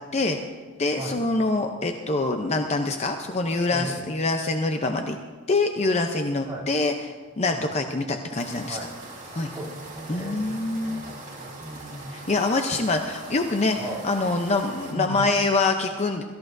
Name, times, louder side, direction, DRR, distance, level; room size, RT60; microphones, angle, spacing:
voice 1, 0.8-5.2 5.5-6.9 7.4-8.8 9.3-9.5 10.1-11.0 12.1-13.8 14.0-16.2, left 3 dB, 30° left, 4 dB, 0.6 m, -25 dB
voice 2, 3.7-4.1 6.4-6.7 7.5-7.7 8.7-8.9 9.5-12.1 13.8-14.0 14.9-15.2, right 1 dB, 10° right, -6 dB, 3.0 m, -37 dB
sound 1, 8.4-14.9, right 2 dB, 35° right, 3.9 m, -41 dB
23.0 x 14.0 x 2.6 m, 1.5 s
head